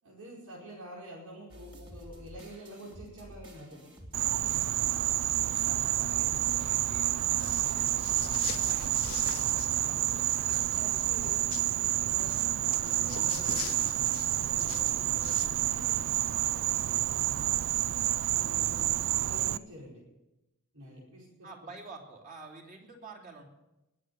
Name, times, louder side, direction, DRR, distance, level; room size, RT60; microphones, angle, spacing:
voice 1, 0.0-3.8 10.7-11.4 11.7-13.8 14.4-17.6 18.3-20.0 20.7-21.5, equal, 90° right, -5 dB, 5.0 m, -48 dB
sound 1, 1.5-10.6, equal, 25° right, 2.7 m, -49 dB
Insect, 4.1-19.6, right 14 dB, 60° right, 0.4 m, -29 dB
voice 2, 4.9-10.6 21.4-23.4, right 3 dB, 40° right, 0 dB, 2.9 m, -50 dB
sound 2, 7.4-9.8 10.1-11.7 12.2-15.6, left 11 dB, 65° left, 0.8 m, -43 dB
20.5 x 7.8 x 7.0 m, 0.96 s
head